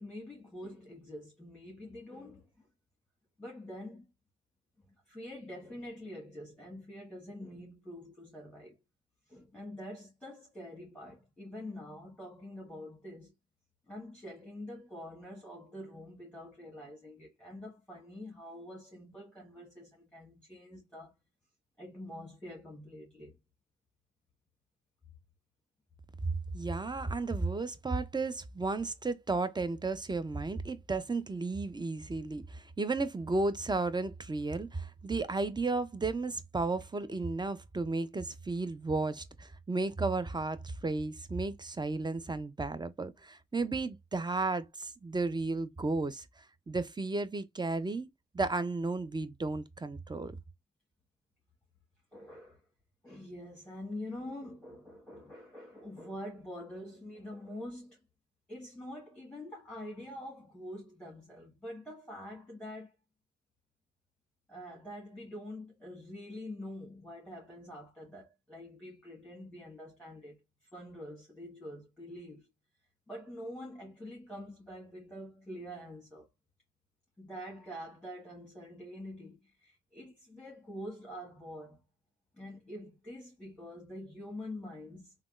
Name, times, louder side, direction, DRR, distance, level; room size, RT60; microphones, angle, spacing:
voice 1, 0.0-2.7 3.4-4.1 4.9-8.8 9.3-13.3 13.9-21.1 21.8-23.4 52.1-52.6 53.0-58.0 58.5-62.9 64.5-70.4 70.7-72.5 73.1-76.3 77.2-81.8 82.4-85.1, left 1 dB, 5° left, 1.2 m, -46 dB
voice 2, 26.5-48.1 48.3-50.3, right 3 dB, 15° right, 0.5 m, -33 dB
3.5 x 2.2 x 2.4 m
supercardioid pair, 40°, 29 cm